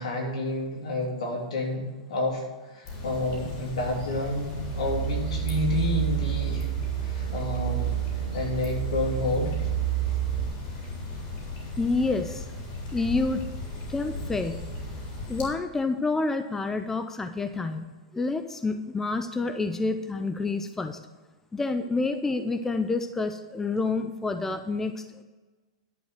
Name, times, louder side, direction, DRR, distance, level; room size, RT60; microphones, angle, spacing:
voice 1, 0.0-2.4 2.7-6.7 7.0-7.9 8.3-9.5, left 2 dB, 80° left, 0 dB, 2.9 m, -29 dB
sound 1, 2.9-15.5, left 2 dB, 45° left, 3.5 m, -37 dB
sound 2, 4.5-10.4, right 17 dB, 80° right, 1.7 m, -29 dB
voice 2, 11.8-12.4 12.9-13.4 13.9-14.7 15.3-21.0 21.5-25.2, left 3 dB, 10° left, 8 dB, 0.5 m, -28 dB
10.5 x 4.6 x 7.8 m, 1.2 s
hypercardioid pair, 120°, 4 cm